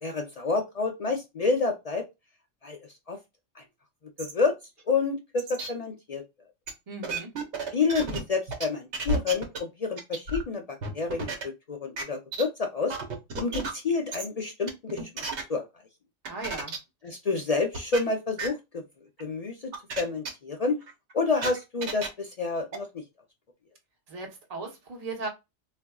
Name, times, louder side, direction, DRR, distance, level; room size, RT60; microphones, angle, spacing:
voice 1, 0.0-2.1 2.6-3.2 3.5-3.6 4.2-4.6 4.9-6.2 7.7-12.9 13.4-15.2 15.5-15.7 17.0-18.8 19.2-20.8 21.1-23.0, left 4 dB, 65° left, 0.3 m, -29 dB
sound 1, 4.2-4.3 4.8-4.9 5.4-5.7 6.7-6.8 7.0-8.2 8.5-8.6 8.9-9.6 10.0-10.4 10.8-11.4 12.0-12.1 12.3-12.4 12.9-13.7 14.1-14.3 14.7-15.4 16.3-16.8 17.1-17.2 17.7-18.0 18.4-18.5 19.2-19.3 19.7-20.0 20.3-20.4 20.8-22.1 22.7-22.8, right 3 dB, 70° right, 1.1 m, -32 dB
voice 2, 6.9-7.3 16.2-16.8 24.1-25.3, right 3 dB, 35° right, 0.9 m, -37 dB
4.0 x 2.5 x 2.2 m
omnidirectional pair, 1.3 m